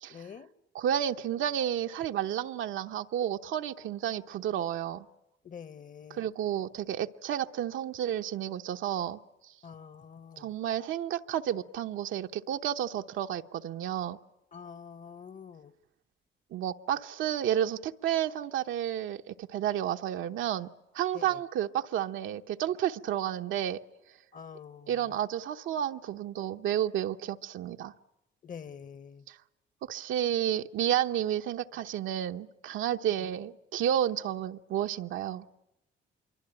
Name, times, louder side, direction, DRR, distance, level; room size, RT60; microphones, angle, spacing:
voice 1, 0.1-0.5 5.4-6.3 9.6-10.5 14.5-15.7 21.1-21.4 24.3-25.1 28.4-29.3 33.2-33.3, left 7 dB, 40° left, 1.1 m, -46 dB
voice 2, 0.7-5.0 6.1-9.2 10.4-14.2 16.5-20.7 20.9-23.8 24.9-27.9 29.3-29.4 29.9-35.4, right 10 dB, 80° right, 0.9 m, -31 dB
26.0 x 23.5 x 9.0 m
cardioid pair, 90°, 20 cm